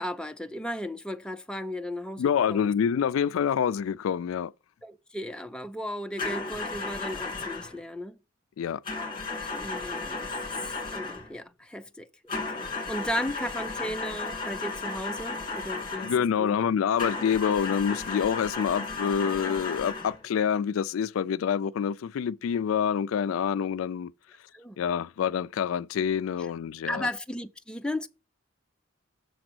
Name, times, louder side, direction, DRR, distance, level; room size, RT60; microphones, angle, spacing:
voice 1, 0.0-2.7 4.8-8.2 9.5-10.4 10.8-16.1 16.4-16.6 24.5-24.8 26.9-28.1, left 1 dB, 5° left, 0.4 m, -35 dB
voice 2, 2.2-4.5 8.6-8.8 16.0-24.1 24.8-27.1, left 7 dB, 85° left, 0.3 m, -27 dB
sound 1, 6.2-7.8 8.8-11.3 12.3-16.3 17.0-20.2, left 3 dB, 25° left, 1.9 m, -34 dB
6.9 x 3.8 x 6.0 m
head